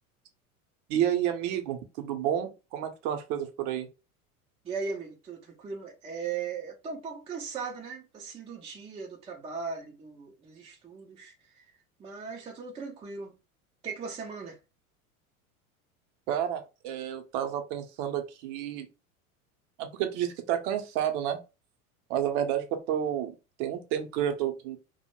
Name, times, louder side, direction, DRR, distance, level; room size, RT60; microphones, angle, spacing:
voice 1, 0.9-3.9 16.3-18.9 19.8-21.4 22.1-23.3 23.6-24.8, right 10 dB, 55° right, 0.7 m, -30 dB
voice 2, 4.6-11.7 12.0-13.3 13.8-14.6, right 5 dB, 15° right, 0.4 m, -38 dB
2.2 x 2.1 x 3.0 m
hypercardioid pair, 85°, 43 cm